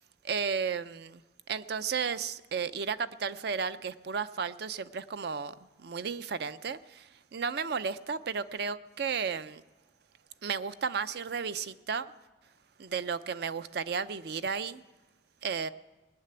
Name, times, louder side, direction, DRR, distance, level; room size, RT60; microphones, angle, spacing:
voice 1, 0.2-1.2 1.5-9.6 10.4-12.1 12.8-14.8 15.4-15.7, right 6 dB, 60° right, 14 dB, 0.5 m, -33 dB
18.5 x 6.7 x 9.8 m, 1.1 s
head